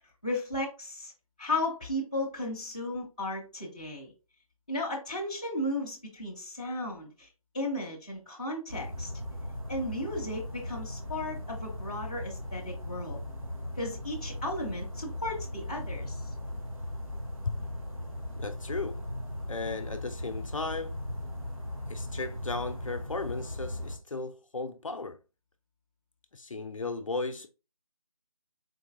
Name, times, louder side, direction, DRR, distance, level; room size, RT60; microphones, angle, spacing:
voice 1, 0.2-1.1 1.4-4.1 4.7-7.3 7.5-9.1 9.7-13.2 13.8-16.2, left 1 dB, 10° left, 0.5 m, -35 dB
sound 1, 8.7-24.0, left 1 dB, 65° right, 1.8 m, -38 dB
voice 2, 18.4-19.0 19.5-21.0 21.9-25.2 26.3-27.5, left 3 dB, 60° left, 0.5 m, -35 dB
3.9 x 2.8 x 2.6 m
figure-of-eight pair, 165°, 19 cm